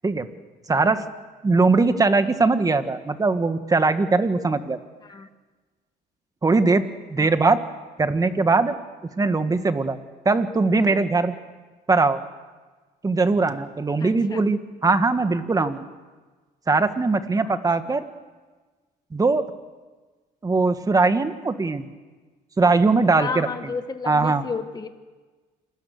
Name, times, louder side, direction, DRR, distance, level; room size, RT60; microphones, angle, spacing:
voice 1, 0.7-1.0 1.4-4.8 6.4-6.8 7.1-7.6 8.0-8.8 9.2-10.0 10.2-11.3 11.9-12.2 13.0-15.8 16.7-18.0 19.1-19.4 20.4-21.9 22.6-23.5 24.1-24.4, right 3 dB, 20° right, 9 dB, 1.6 m, -20 dB
voice 2, 14.0-14.4 17.4-17.6 17.9-18.0 23.2-24.9, left 5 dB, 25° left, 8 dB, 1.3 m, -32 dB
27.5 x 21.5 x 6.6 m, 1.3 s
cardioid pair, 110°, 17 cm